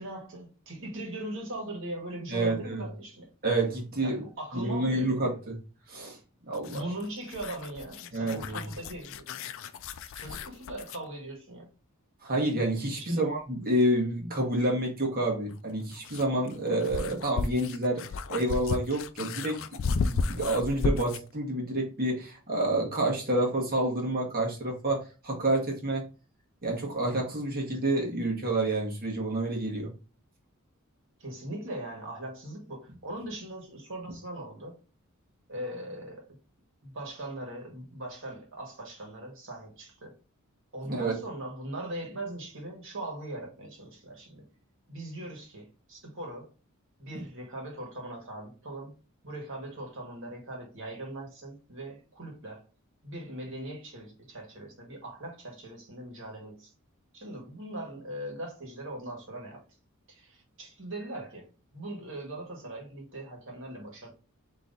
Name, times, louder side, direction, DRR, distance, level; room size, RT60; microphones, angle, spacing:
voice 1, 0.0-3.3 4.0-5.1 6.7-9.3 10.1-11.7 13.0-13.3 31.2-34.8 35.5-36.3 36.8-40.1 40.7-44.5 44.9-46.5 47.0-48.9 49.2-52.6 53.0-56.7 57.1-59.6 60.1-61.4 61.7-64.1, right 1 dB, 60° right, 1.8 m, -40 dB
voice 2, 2.3-2.8 3.4-4.2 4.5-5.6 5.9-6.2 6.4-6.8 8.1-8.6 12.2-18.0 18.3-26.1 26.6-29.9 40.9-41.2 47.1-47.2, right 1 dB, 45° right, 1.5 m, -29 dB
sound 1, 6.5-11.1 13.4-13.5 15.5-21.3, left 4 dB, 60° left, 0.4 m, -34 dB
3.9 x 3.2 x 4.0 m
head